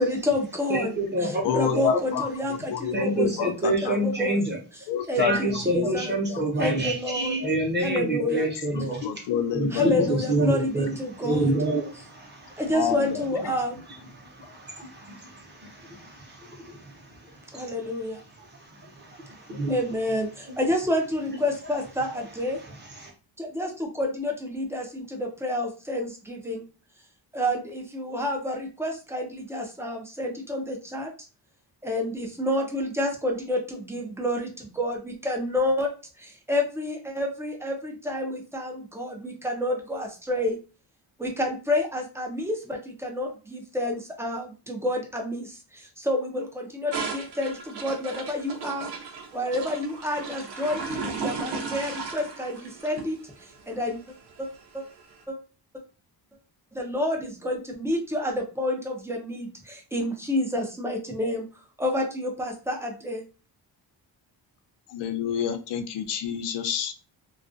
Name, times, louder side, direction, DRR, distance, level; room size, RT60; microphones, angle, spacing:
voice 1, 0.0-0.9 1.2-4.4 5.1-6.2 6.6-7.4 7.8-8.4 9.7-11.6 12.6-13.8 17.5-18.2 19.7-22.6 23.4-26.6 27.3-31.1 31.8-35.9 36.2-40.6 41.2-48.9 49.3-53.2 53.7-54.0 54.4-54.5 54.7-54.8 55.3-55.4 56.7-61.4 61.8-63.2, left 1 dB, 5° right, 1 dB, 0.4 m, -29 dB
voice 2, 0.7-2.2 2.9-4.6 5.2-9.2 9.5-12.7 14.1-17.7 18.4-19.8 22.6-23.1, right 1 dB, 25° right, -1 dB, 0.8 m, -28 dB
voice 3, 1.4-2.3 2.7-4.0 4.9-5.4 6.3-6.4 8.2-10.1 12.7-13.2 64.9-66.9, left 8 dB, 90° left, 8 dB, 0.5 m, -28 dB
sound 1, 46.9-55.1, right 4 dB, 70° right, 0.7 m, -36 dB
2.4 x 2.2 x 2.5 m, 0.34 s
cardioid pair, 145°, 41 cm